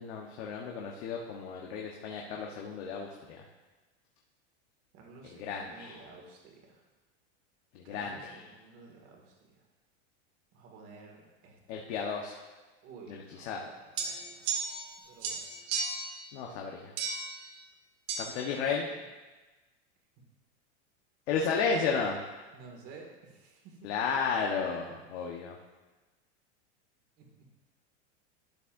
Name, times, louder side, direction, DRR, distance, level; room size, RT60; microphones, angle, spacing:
voice 1, 0.0-3.4 5.3-6.0 7.7-8.4 11.7-12.4 13.1-13.7 16.3-16.9 18.2-18.8 21.3-22.2 23.8-25.6, left 5 dB, 70° left, 0 dB, 1.1 m, -33 dB
voice 2, 4.9-6.8 7.8-9.6 10.5-11.9 12.8-14.5 15.0-15.5 18.3-19.0 22.5-23.9 27.2-27.3, right 4 dB, 40° right, 0 dB, 2.0 m, -52 dB
sound 1, 14.0-14.9 15.2-16.1 17.0-17.3 18.1-18.2, right 5 dB, 60° right, 1.5 m, -34 dB
12.5 x 8.6 x 2.6 m, 1.2 s
supercardioid pair, 150°, 34 cm